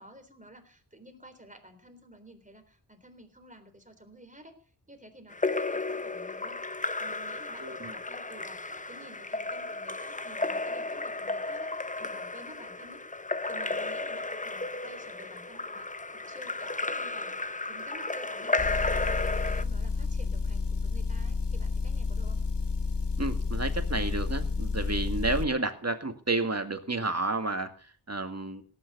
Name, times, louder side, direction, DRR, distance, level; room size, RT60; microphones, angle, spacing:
voice 1, 0.0-6.6 7.0-13.0 13.4-17.4 17.7-19.2 19.5-22.4, right 1 dB, 20° right, 6 dB, 3.7 m, -51 dB
Splash splatter / Drip / Trickle dribble, 5.3-19.6, left 3 dB, 20° left, 0.7 m, -33 dB
voice 2, 7.6-7.9 23.2-27.7 28.1-28.6, right 2 dB, 40° right, 7 dB, 2.1 m, -31 dB
Motor vehicle (road) / Engine, 18.6-25.5, left 4 dB, 80° left, 1.5 m, -30 dB
17.5 x 9.7 x 6.8 m, 0.41 s
wide cardioid pair, 75°, 41 cm